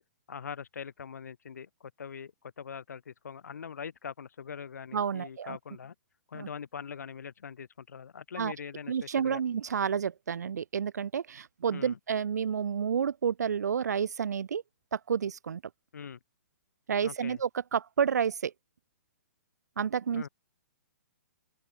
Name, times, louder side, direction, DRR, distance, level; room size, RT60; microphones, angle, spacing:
voice 1, 0.3-2.3 2.6-5.9 6.3-9.4 11.7-12.0 15.9-16.2 17.0-17.4 20.1-20.3, left 7 dB, 80° left, 3.3 m, -42 dB
voice 2, 4.9-5.6 6.3-6.5 8.4-8.5 8.9-14.6 14.9-15.6 16.9-18.5 19.8-20.3, right 7 dB, 90° right, 0.5 m, -30 dB
open air
hypercardioid pair, 150°, 9 cm